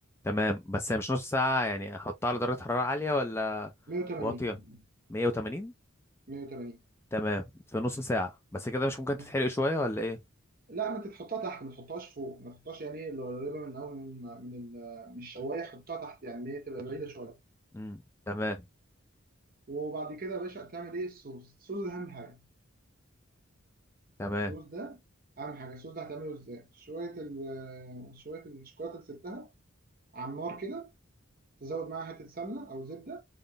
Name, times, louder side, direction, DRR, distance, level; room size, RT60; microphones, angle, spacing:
voice 1, 0.2-3.7 4.2-4.6 5.1-5.7 7.1-7.4 7.7-10.2 17.7-18.6 24.2-24.5, left 1 dB, 10° left, 0.4 m, -30 dB
voice 2, 3.9-4.8 6.3-6.8 9.1-9.3 10.7-17.4 19.7-22.4 24.5-25.0 25.4-29.5 30.1-30.9 31.6-33.2, right 3 dB, 45° right, 1.0 m, -39 dB
3.9 x 2.1 x 3.4 m
head